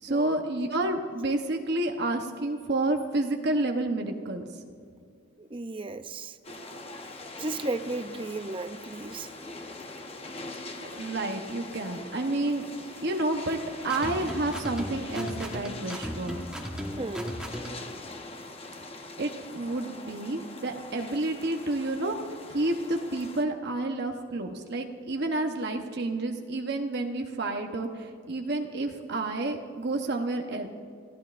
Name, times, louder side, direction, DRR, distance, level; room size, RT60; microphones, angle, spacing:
voice 1, 0.0-4.5 10.8-16.4 19.2-22.2 22.5-30.7, right 2 dB, 55° right, 3 dB, 0.9 m, -30 dB
voice 2, 5.4-6.3 7.4-9.3 17.0-17.3, right 2 dB, 25° right, 10 dB, 0.5 m, -34 dB
sound 1, 6.4-23.4, left 2 dB, 30° left, 0.9 m, -43 dB
sound 2, 13.8-17.9, equal, 5° right, 1.2 m, -36 dB
28.0 x 15.0 x 2.5 m, 2.3 s
head